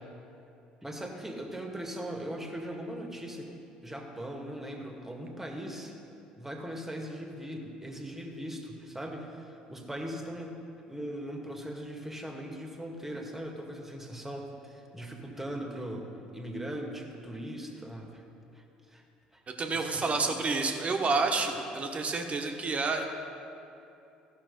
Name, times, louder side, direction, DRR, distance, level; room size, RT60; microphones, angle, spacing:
voice 1, 0.8-3.5 3.8-5.9 6.4-10.6 10.9-18.2 18.5-19.0 19.3-19.4 19.8-20.3, equal, 10° right, 1 dB, 1.8 m, -39 dB
voice 2, 19.6-23.0, right 4 dB, 35° right, 3 dB, 1.2 m, -29 dB
14.5 x 5.9 x 5.3 m, 2.8 s
hypercardioid pair, 60°, 4 cm